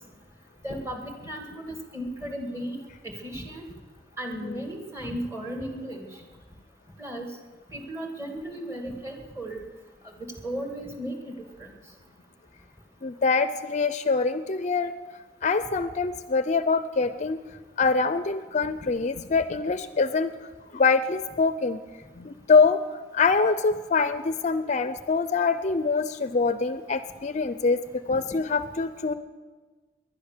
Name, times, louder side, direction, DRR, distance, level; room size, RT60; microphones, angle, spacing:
voice 1, 0.6-2.8 3.0-3.7 4.2-6.1 7.0-7.3 7.7-9.6 10.2-11.3 11.6-11.7, equal, 15° right, 3 dB, 2.1 m, -35 dB
voice 2, 13.0-14.9 15.4-17.4 17.8-20.3 20.7-21.8 22.2-22.8 23.1-27.8 28.1-29.1, left 4 dB, 45° left, 12 dB, 0.5 m, -24 dB
19.5 x 11.0 x 6.7 m, 1.3 s
head